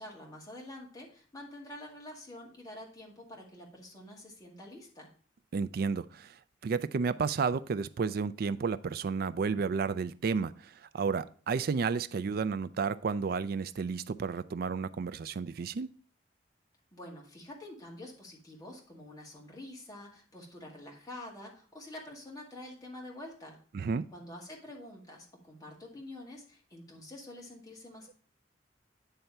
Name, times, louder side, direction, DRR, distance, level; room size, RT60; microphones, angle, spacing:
voice 1, 0.0-5.1 16.9-23.6 24.1-28.1, left 1 dB, 20° left, -2 dB, 2.0 m, -47 dB
voice 2, 5.5-6.3 6.6-10.5 10.9-15.9 23.7-24.0, right 5 dB, 55° right, 14 dB, 0.4 m, -31 dB
9.0 x 3.5 x 5.4 m, 0.42 s
head